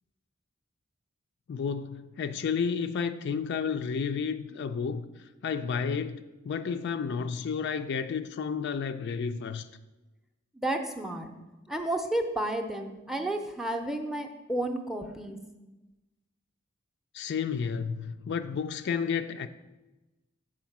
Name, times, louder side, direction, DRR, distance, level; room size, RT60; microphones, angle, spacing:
voice 1, 1.5-9.7 17.1-19.5, left 6 dB, 55° left, 0.3 m, -31 dB
voice 2, 10.6-11.3 11.7-15.4, right 1 dB, ahead, 0.5 m, -31 dB
7.1 x 4.8 x 5.9 m
head